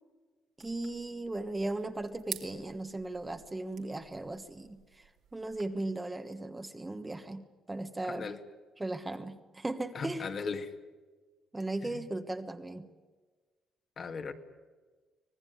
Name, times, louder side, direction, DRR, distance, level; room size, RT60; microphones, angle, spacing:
voice 1, 0.6-8.3 8.8-10.2 11.5-12.9, right 2 dB, 15° right, 7 dB, 1.4 m, -37 dB
sound 1, 0.6-5.6, right 9 dB, 70° right, 2.6 m, -49 dB
voice 2, 8.1-8.4 9.9-10.7 11.8-12.0 14.0-14.3, left 5 dB, 45° left, 5 dB, 2.0 m, -37 dB
25.0 x 19.0 x 9.5 m, 1.4 s
cardioid pair, 110°, 0 cm